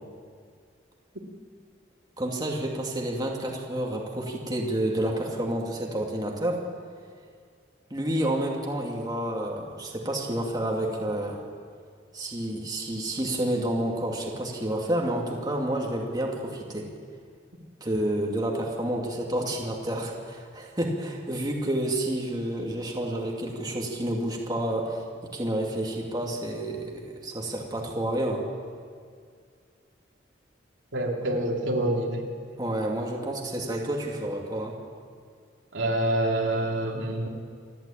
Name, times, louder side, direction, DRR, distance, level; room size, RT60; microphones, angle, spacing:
voice 1, 2.2-6.7 7.9-11.4 12.1-16.9 17.8-25.1 25.3-28.5 32.6-34.8, right 1 dB, 20° right, -1 dB, 2.5 m, -29 dB
voice 2, 30.9-32.3 35.7-37.3, right 1 dB, 85° right, 0 dB, 2.9 m, -26 dB
28.0 x 12.0 x 8.7 m, 2.1 s
head